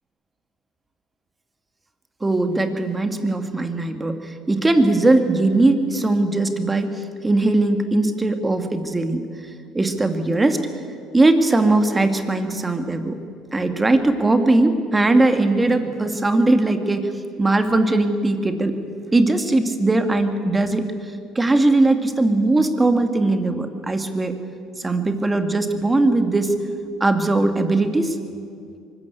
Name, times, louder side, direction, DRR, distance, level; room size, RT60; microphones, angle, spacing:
voice 1, 2.2-9.2 9.7-10.7 11.1-13.2 13.5-17.1 17.4-18.8 19.1-20.8 21.4-24.4 24.8-26.5 27.0-28.2, right 2 dB, 20° right, 7 dB, 2.2 m, -19 dB
23.5 x 14.0 x 8.4 m, 2.4 s
supercardioid pair, 75°, 0 cm